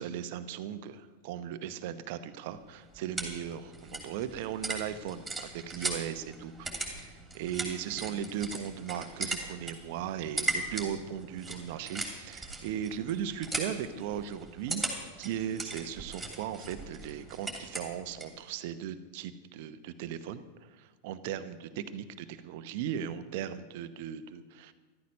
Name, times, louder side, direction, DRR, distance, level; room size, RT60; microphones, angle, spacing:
voice 1, 0.0-6.7 7.0-14.8 15.2-20.4 20.7-24.7, right 9 dB, 50° right, 11 dB, 0.9 m, -37 dB
sound 1, 2.5-18.4, right 2 dB, 5° right, 3.0 m, -39 dB
13.5 x 13.0 x 5.4 m, 1.3 s
figure-of-eight pair, 90°, 0 cm